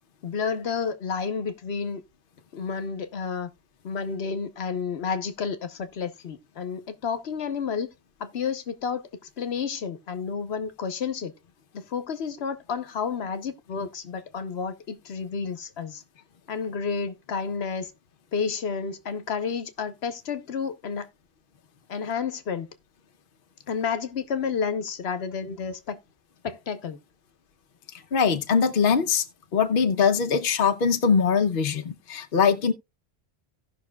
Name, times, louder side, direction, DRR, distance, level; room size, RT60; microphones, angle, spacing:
voice 1, 0.2-2.0 2.5-3.5 3.8-7.9 8.2-9.0 9.4-11.3 11.7-16.0 16.5-17.9 18.3-21.1 21.9-22.7 23.7-26.0 26.4-27.0, left 6 dB, 85° left, 1.2 m, -30 dB
voice 2, 28.1-29.3 29.5-32.7, left 6 dB, 60° left, 0.9 m, -22 dB
17.0 x 5.8 x 2.3 m
omnidirectional pair, 1.0 m